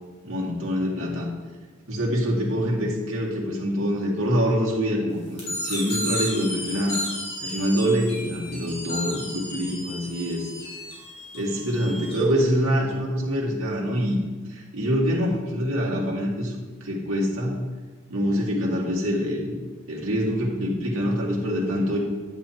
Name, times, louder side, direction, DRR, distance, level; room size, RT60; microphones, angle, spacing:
voice 1, 0.2-1.3 1.9-7.0 7.4-10.4 11.3-14.2 14.5-17.6 18.1-19.6 19.9-22.0, equal, 80° right, -3 dB, 2.1 m, -25 dB
sound 1, 5.4-12.2, left 1 dB, 30° left, 3.0 m, -33 dB
10.0 x 8.7 x 3.0 m, 1.3 s
head